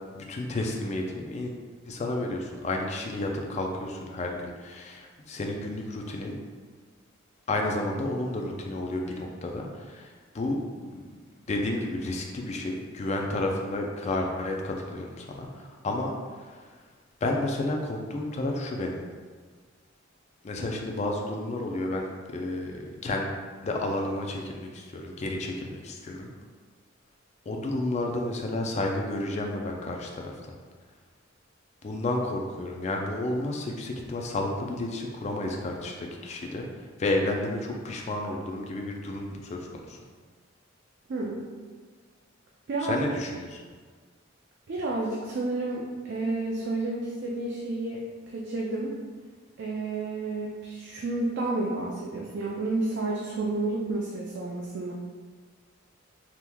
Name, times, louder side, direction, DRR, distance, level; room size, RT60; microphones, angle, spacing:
voice 1, 0.1-1.5 1.9-6.4 7.5-10.1 10.3-11.0 11.5-16.1 17.2-19.0 20.4-23.3 23.6-26.3 27.5-30.3 31.8-36.7 37.0-40.0 42.8-43.6, left 2 dB, 35° left, 1 dB, 0.4 m, -31 dB
voice 2, 41.1-41.4 42.7-43.1 44.7-48.0 48.3-49.0 49.6-54.9, right 2 dB, 55° right, -3 dB, 0.4 m, -30 dB
3.5 x 2.9 x 2.2 m, 1.5 s
head